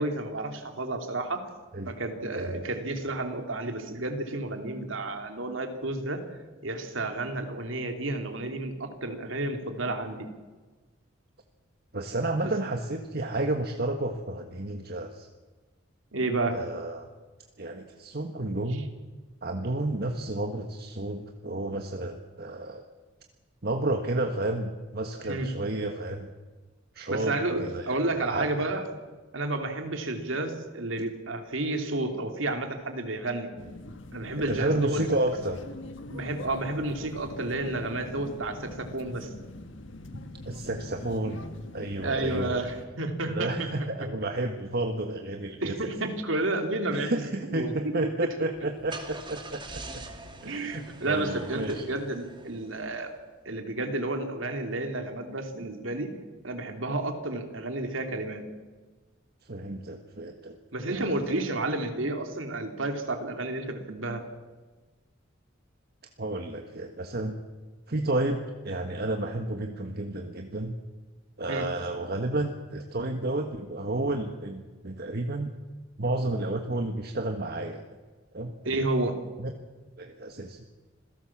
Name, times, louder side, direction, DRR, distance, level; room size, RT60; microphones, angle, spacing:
voice 1, 0.0-1.5 1.8-6.2 6.6-10.3 12.4-12.5 16.1-16.6 18.7-18.8 25.2-25.5 27.1-28.8 29.3-33.5 34.1-35.0 36.1-39.3 42.0-43.9 45.6-47.7 50.4-53.1 53.4-56.1 56.4-58.4 60.7-64.2 71.5-71.7 78.6-79.2, right 2 dB, 85° right, 5 dB, 3.1 m, -31 dB
voice 2, 2.3-2.7 11.9-15.3 16.5-17.1 17.6-18.9 19.4-22.8 23.6-26.3 26.9-28.0 28.3-28.7 34.5-35.6 40.4-41.4 41.7-42.6 43.3-45.9 46.9-50.0 50.4-51.9 59.4-60.6 60.9-61.4 66.2-67.4 67.9-70.8 71.4-75.5 76.0-77.8 78.3-78.8 79.4-79.5 80.0-80.6, right 2 dB, 55° right, 4 dB, 1.5 m, -31 dB
sound 1, 33.6-42.9, left 2 dB, 70° left, 1.5 m, -43 dB
Car / Engine starting, 48.5-53.2, right 2 dB, 25° right, 2.5 m, -44 dB
26.5 x 17.0 x 7.4 m, 1.3 s
head